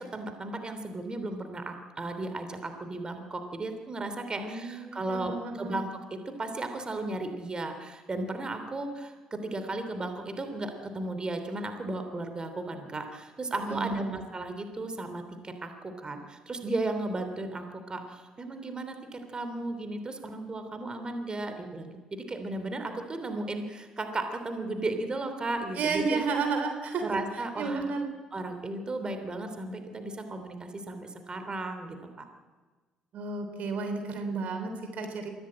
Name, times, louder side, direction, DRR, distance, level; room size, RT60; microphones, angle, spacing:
voice 1, 0.0-26.2 27.0-27.9 28.3-32.2, right 2 dB, 30° right, 7 dB, 3.2 m, -35 dB
voice 2, 4.3-5.8 13.6-14.2 25.8-27.0 27.6-28.1 33.1-35.3, right 4 dB, 55° right, 5 dB, 3.4 m, -32 dB
23.5 x 16.5 x 8.8 m, 1.3 s
hypercardioid pair, 50°, 3 cm